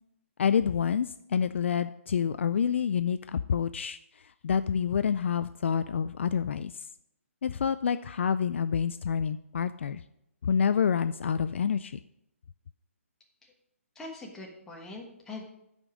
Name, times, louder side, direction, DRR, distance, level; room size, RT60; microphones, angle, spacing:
voice 1, 0.4-6.9 7.4-10.0 10.4-12.0, left 7 dB, 55° left, 12 dB, 0.3 m, -28 dB
voice 2, 13.9-15.4, left 2 dB, 5° left, -1 dB, 1.3 m, -42 dB
8.9 x 5.1 x 6.2 m, 0.81 s
hypercardioid pair, 160°, 8 cm